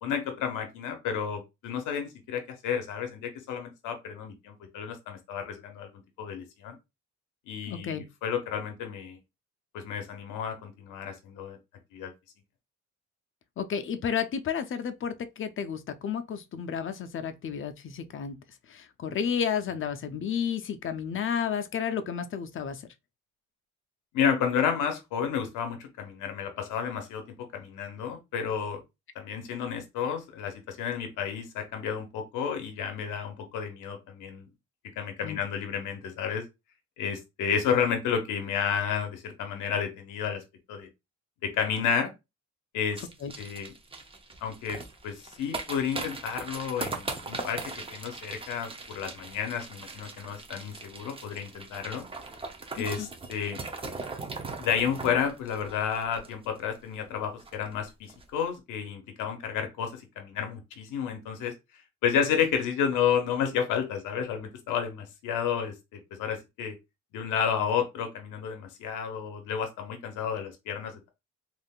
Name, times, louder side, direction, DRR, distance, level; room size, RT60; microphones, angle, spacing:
voice 1, 0.0-5.9 6.2-6.8 7.5-9.2 9.7-11.6 11.9-12.1 24.1-27.2 27.5-28.8 29.2-34.5 35.0-36.4 37.0-40.4 40.7-40.9 41.4-42.1 42.7-43.1 43.4-43.7 44.4-47.6 47.9-52.1 52.7-53.6 54.6-61.5 62.0-66.7 67.1-70.9, left 7 dB, 90° left, 0.7 m, -31 dB
voice 2, 7.7-8.0 13.6-18.4 18.7-22.8 35.2-35.4 43.2-43.3 52.8-53.1, left 7 dB, 45° left, 0.5 m, -32 dB
sound 1, 43.0-56.8 57.0-57.1 57.4-57.7 58.1-58.2, right 3 dB, 20° right, 0.6 m, -40 dB
3.5 x 2.5 x 2.2 m
cardioid pair, 90°, 30 cm